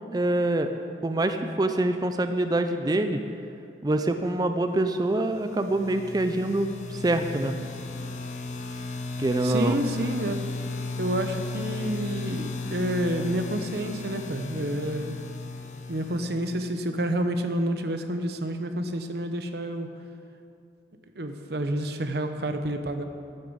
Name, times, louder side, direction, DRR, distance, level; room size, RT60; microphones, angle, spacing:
voice 1, 0.1-0.7 1.0-3.2 3.8-7.6 9.2-9.8, right 1 dB, 20° right, 7 dB, 0.4 m, -25 dB
sound 1, 5.3-17.1, left 3 dB, 40° left, 0.9 m, -35 dB
voice 2, 9.4-10.4 11.0-15.2 15.9-19.9 21.2-23.0, right 1 dB, 60° right, 7 dB, 0.9 m, -29 dB
12.5 x 7.0 x 7.9 m, 2.5 s
head